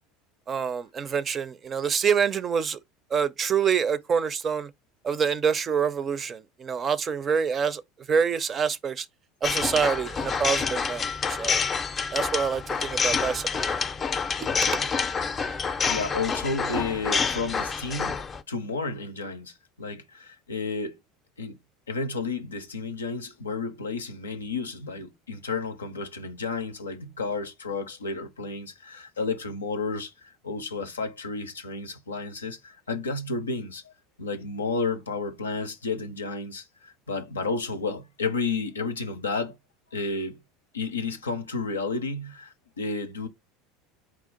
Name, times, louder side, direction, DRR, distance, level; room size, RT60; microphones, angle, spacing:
voice 1, 0.5-2.8 3.1-4.7 5.0-7.8 8.1-9.1 9.4-11.0 11.3-11.6 12.1-13.8 14.6-14.8, right 6 dB, 35° right, 0.5 m, -26 dB
sound 1, 9.4-18.4, left 5 dB, 30° left, 0.5 m, -28 dB
voice 2, 15.8-18.2 18.5-21.0 21.4-21.6 21.9-33.9 34.2-39.6 39.9-40.4 40.7-43.3, left 4 dB, 90° left, 0.5 m, -32 dB
4.2 x 2.4 x 3.7 m
hypercardioid pair, 75°, 0 cm